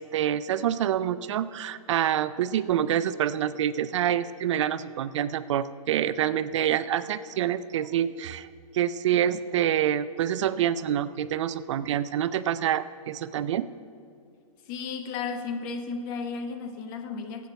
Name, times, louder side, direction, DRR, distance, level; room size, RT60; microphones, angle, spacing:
voice 1, 0.0-8.5 8.7-13.7, right 10 dB, 55° right, 0.4 m, -27 dB
voice 2, 14.7-17.5, left 5 dB, 35° left, 0.9 m, -34 dB
12.0 x 8.4 x 5.4 m
hypercardioid pair, 145°, 19 cm